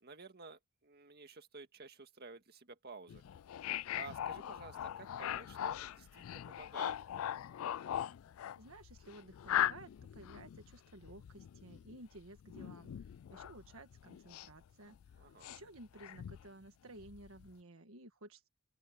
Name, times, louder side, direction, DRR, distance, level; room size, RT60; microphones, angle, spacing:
voice 1, 0.0-3.2 3.9-6.9 15.2-15.5, right 3 dB, 50° right, 1.9 m, -53 dB
sound 1, 3.1-14.7 14.9-16.5 17.0-17.5, left 11 dB, 70° left, 0.3 m, -41 dB
voice 2, 8.6-18.5, right 2 dB, 75° right, 1.6 m, -55 dB
open air
head